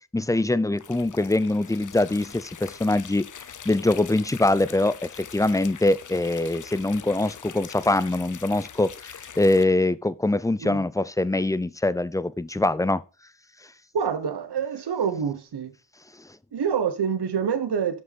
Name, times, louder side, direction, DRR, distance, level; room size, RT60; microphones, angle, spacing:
voice 1, 0.1-3.2 3.7-13.0, left 2 dB, 10° left, 0.4 m, -23 dB
sound 1, 0.8-9.6, left 8 dB, 45° left, 0.7 m, -43 dB
voice 2, 13.9-15.7 16.5-18.0, right 7 dB, 65° right, 1.1 m, -26 dB
9.4 x 6.1 x 4.1 m
cardioid pair, 55°, 42 cm